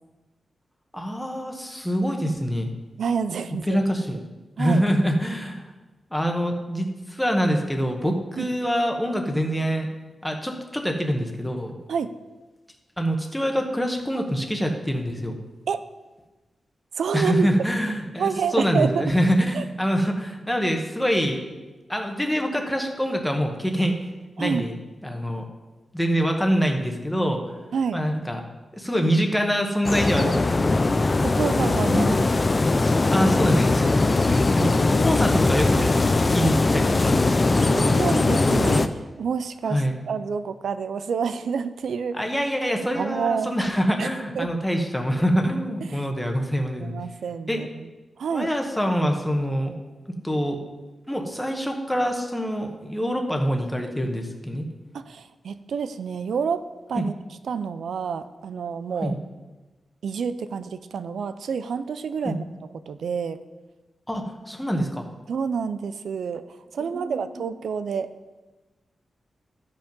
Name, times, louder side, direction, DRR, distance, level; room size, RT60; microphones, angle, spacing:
voice 1, 0.9-2.7 3.7-4.2 4.6-5.6 6.1-9.9 10.2-11.7 13.0-15.4 17.1-21.4 21.9-23.9 24.4-24.7 25.0-25.4 25.9-27.5 27.9-28.4 28.7-30.7 31.8-32.2 32.8-34.7 35.0-36.0 36.3-37.2 39.7-40.0 42.1-46.9 47.5-47.6 48.3-49.7 50.2-50.6 51.1-54.7 56.9-57.1 59.0-59.2 62.2-62.3 64.1-65.0 66.8-67.4, equal, 5° left, 3 dB, 1.2 m, -25 dB
voice 2, 3.0-3.9 4.6-4.8 8.4-8.5 11.9-12.2 15.7-15.8 17.0-17.5 18.2-19.1 19.5-19.6 24.4-24.7 27.7-28.0 30.2-30.5 31.2-32.0 37.6-42.3 42.9-43.5 44.0-44.1 44.4-44.5 45.9-46.1 46.8-47.9 48.2-48.5 54.9-57.1 57.4-59.1 60.0-62.4 62.9-63.4 65.3-68.1, right 6 dB, 90° right, 12 dB, 0.5 m, -28 dB
sound 1, 29.8-38.9, left 3 dB, 30° left, 0.5 m, -20 dB
12.5 x 5.2 x 5.4 m, 1.2 s
wide cardioid pair, 120°, 0 cm